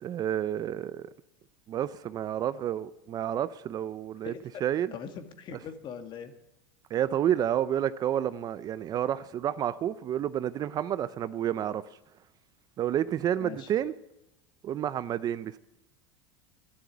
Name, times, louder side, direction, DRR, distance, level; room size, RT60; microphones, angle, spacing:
voice 1, 0.0-1.1 1.7-4.3 4.6-4.9 6.9-11.8 12.8-13.9 14.6-15.6, right 10 dB, 35° right, 16 dB, 0.6 m, -30 dB
voice 2, 4.9-6.3 13.4-13.7, left 7 dB, 40° left, 8 dB, 2.0 m, -41 dB
13.0 x 11.5 x 9.2 m, 0.90 s
supercardioid pair, 125°, 12 cm